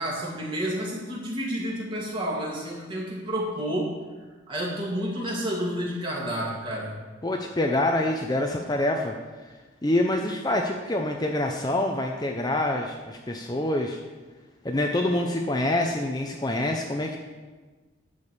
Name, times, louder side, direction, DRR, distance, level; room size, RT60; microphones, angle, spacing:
voice 1, 0.0-3.9 4.5-6.9, equal, 25° right, -3 dB, 2.3 m, -30 dB
voice 2, 7.2-9.1 9.8-14.0 14.6-17.2, left 1 dB, 20° left, 2 dB, 0.6 m, -26 dB
10.5 x 5.1 x 7.3 m, 1.3 s
head